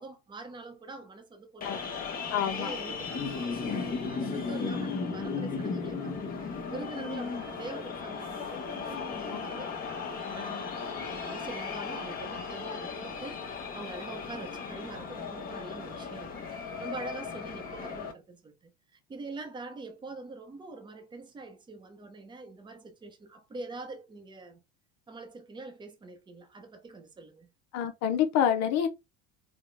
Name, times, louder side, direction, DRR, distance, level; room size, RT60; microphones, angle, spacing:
voice 1, 0.0-1.9 2.4-10.7 11.1-13.4 13.7-16.4 16.8-24.6 25.1-27.5, right 3 dB, 15° right, 0.8 m, -44 dB
sound 1, 1.6-18.1, left 5 dB, 25° left, 1.2 m, -36 dB
voice 2, 2.3-2.7 9.3-9.4 27.7-28.9, left 9 dB, 55° left, 0.8 m, -27 dB
3.9 x 2.3 x 3.3 m
supercardioid pair, 125°, 33 cm